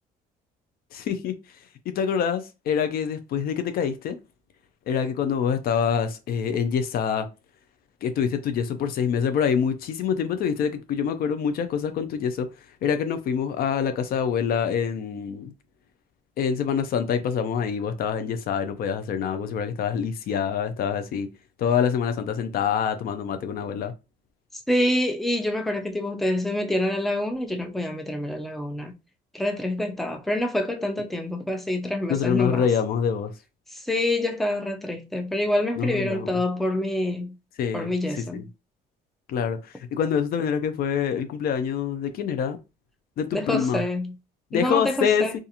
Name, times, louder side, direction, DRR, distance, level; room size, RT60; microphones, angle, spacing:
voice 1, 0.9-1.3 1.9-4.2 4.9-7.3 8.0-12.5 12.8-15.5 16.4-21.3 21.6-23.9 32.1-33.3 35.8-36.4 37.6-38.4 39.3-39.6 39.9-42.6 43.2-43.8 44.5-45.3, left 7 dB, 60° left, 0.5 m, -25 dB
voice 2, 24.7-28.9 29.3-32.7 33.7-37.3 37.7-38.4 43.3-44.2 44.5-45.3, left 1 dB, ahead, 0.4 m, -26 dB
2.4 x 2.4 x 2.8 m
cardioid pair, 110°, 17 cm